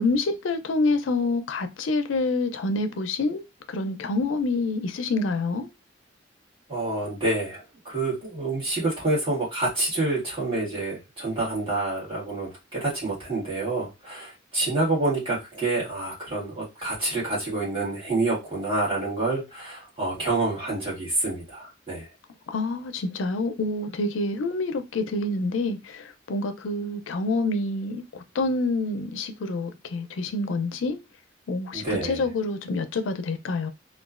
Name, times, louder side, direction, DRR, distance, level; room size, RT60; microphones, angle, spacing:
voice 1, 0.0-3.4 3.7-5.7 22.5-31.0 31.5-33.7, left 2 dB, 90° left, 0.4 m, -27 dB
voice 2, 6.7-22.1 31.7-32.3, right 2 dB, 30° right, 1.6 m, -28 dB
2.9 x 2.3 x 2.4 m
head